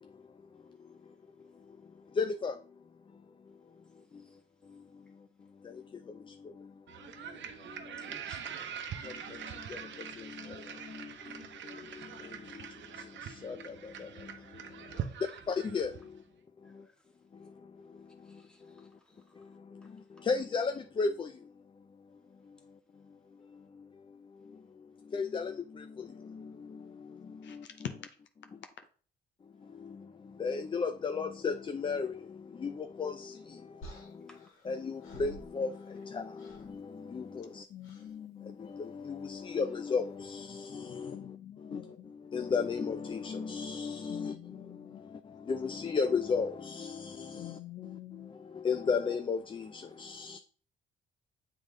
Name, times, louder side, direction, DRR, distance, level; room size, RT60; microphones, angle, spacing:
voice 1, 0.0-2.8 3.1-4.3 4.6-8.2 9.0-15.1 15.5-16.2 16.6-16.9 17.3-18.9 19.3-21.5 22.0-22.8 23.0-27.7 29.6-34.4 34.6-37.7 38.4-41.9 42.3-47.6 48.3-50.4, left 5 dB, 25° left, 0.4 m, -37 dB
sound 1, 6.9-16.2, right 8 dB, 65° right, 0.8 m, -43 dB
voice 2, 8.0-9.1 14.9-15.2 16.6-17.1 18.2-19.4 19.8-19.9 34.3-34.4, equal, 5° left, 1.6 m, -59 dB
voice 3, 27.4-27.7 37.7-38.6 40.5-42.1 44.1-45.0 47.3-48.3, left 11 dB, 65° left, 0.9 m, -47 dB
sound 2, 33.8-36.1 36.4-36.8 37.8-38.1 39.5-39.8, right 1 dB, 85° left, 1.9 m, -51 dB
7.1 x 3.7 x 3.7 m
cardioid pair, 90°, 20 cm